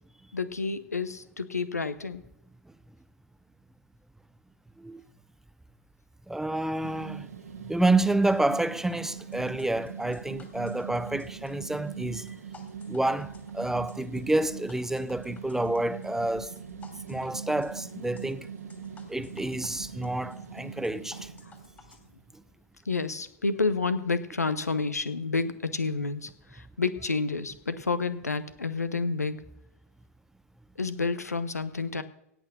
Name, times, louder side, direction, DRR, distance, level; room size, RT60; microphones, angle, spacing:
voice 1, 0.3-2.2 22.9-29.4 30.8-32.0, left 4 dB, 85° left, 0.8 m, -29 dB
voice 2, 6.3-7.3 7.6-12.4 12.9-16.6 17.1-18.5 19.1-21.3, right 2 dB, 5° right, 0.5 m, -29 dB
sound 1, 6.8-22.2, right 6 dB, 80° right, 1.7 m, -42 dB
sound 2, 8.3-22.0, left 4 dB, 20° left, 2.8 m, -55 dB
17.5 x 6.1 x 6.6 m
figure-of-eight pair, 90°, 8 cm